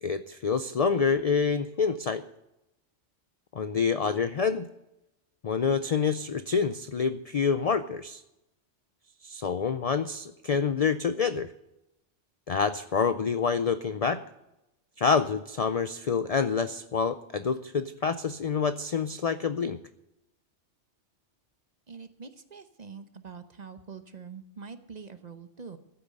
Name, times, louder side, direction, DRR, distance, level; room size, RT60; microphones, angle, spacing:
voice 1, 0.0-2.2 3.5-4.7 5.4-8.2 9.2-11.5 12.5-14.2 15.0-19.8, left 5 dB, 60° left, 12 dB, 0.4 m, -27 dB
voice 2, 21.9-25.8, right 5 dB, 40° right, 10 dB, 0.9 m, -44 dB
14.5 x 8.7 x 6.6 m, 0.91 s
omnidirectional pair, 1.2 m